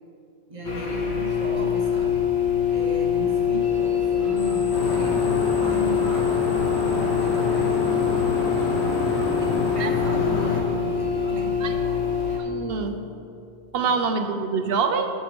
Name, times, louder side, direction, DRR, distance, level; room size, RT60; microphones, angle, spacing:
voice 1, 0.5-2.3 2.7-8.0 8.7-12.1 13.8-13.9 14.2-14.3, right 3 dB, 30° right, 0 dB, 1.2 m, -36 dB
sound 1, 0.6-12.4, left 8 dB, 70° left, 1.5 m, -24 dB
sound 2, 4.3-9.7, left 2 dB, 30° left, 0.9 m, -46 dB
sound 3, 4.7-10.6, left 3 dB, 85° left, 1.4 m, -28 dB
voice 2, 12.4-13.0 13.7-15.1, right 5 dB, 65° right, 6 dB, 0.9 m, -25 dB
11.5 x 5.2 x 5.2 m, 2.5 s
omnidirectional pair, 1.1 m